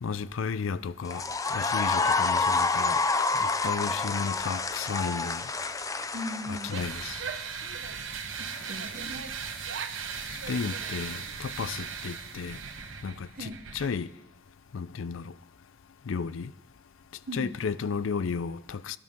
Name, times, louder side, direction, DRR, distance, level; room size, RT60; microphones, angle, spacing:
voice 1, 0.0-1.2 1.5-3.0 3.3-5.4 6.5-7.2 10.5-12.6 13.0-14.1 14.7-15.3 16.1-16.5 17.3-19.0, left 5 dB, 90° left, 0.5 m, -33 dB
sound 1, 1.0-7.4, left 3 dB, 15° left, 0.5 m, -28 dB
voice 2, 6.1-6.8 8.4-9.3 13.3-13.6 17.3-17.5, left 1 dB, 50° right, 1.1 m, -38 dB
Female speech woman speaking / Yell, 6.6-8.2 8.8-10.1 10.3-11.3, right 6 dB, 65° right, 0.7 m, -42 dB
sound 2, 6.7-13.9, right 6 dB, 80° right, 1.2 m, -38 dB
22.5 x 12.0 x 3.7 m
head